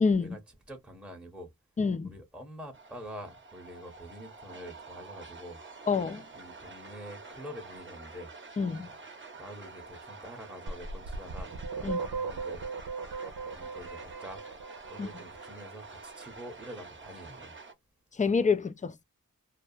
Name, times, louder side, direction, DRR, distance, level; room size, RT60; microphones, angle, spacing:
voice 1, 0.0-0.4 1.8-2.1 5.9-6.2 8.6-8.9 11.8-12.0 15.0-15.1 18.2-19.0, left 5 dB, 20° left, 0.4 m, -27 dB
voice 2, 0.7-1.5 2.0-5.6 6.3-8.3 9.4-12.7 13.5-14.4 14.9-17.6, equal, 5° right, 0.8 m, -46 dB
sound 1, 2.7-17.7, right 3 dB, 35° right, 0.7 m, -48 dB
sound 2, 10.7-15.5, right 4 dB, 85° right, 0.5 m, -37 dB
2.4 x 2.2 x 2.6 m
wide cardioid pair, 45°, 35 cm